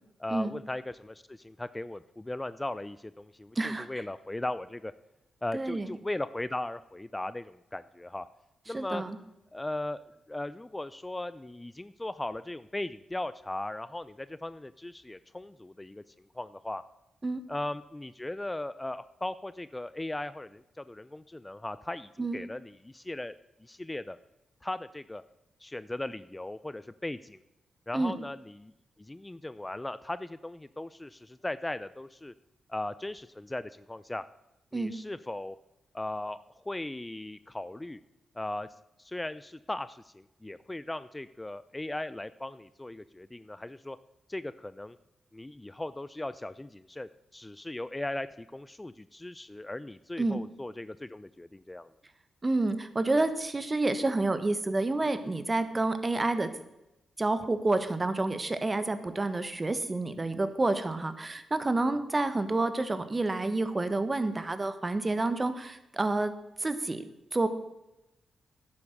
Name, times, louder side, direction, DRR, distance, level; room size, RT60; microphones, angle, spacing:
voice 1, 0.2-4.9 5.4-8.3 8.7-9.0 9.5-10.0 10.3-16.0 16.3-16.8 17.5-23.3 23.6-24.2 24.6-25.2 25.6-27.4 27.9-28.7 29.0-32.3 32.7-34.2 34.7-35.6 35.9-38.0 38.4-38.7 39.0-44.0 44.3-45.0 45.3-51.9, left 1 dB, 20° left, 15 dB, 0.5 m, -38 dB
voice 2, 3.5-3.9 5.5-5.9 8.7-9.2 17.2-17.4 22.2-22.4 27.9-28.1 34.7-34.9 50.2-50.4 52.4-56.5 57.2-66.3 66.6-67.5, right 2 dB, 30° right, 11 dB, 1.3 m, -29 dB
10.5 x 8.6 x 6.6 m, 0.94 s
supercardioid pair, 45°, 0 cm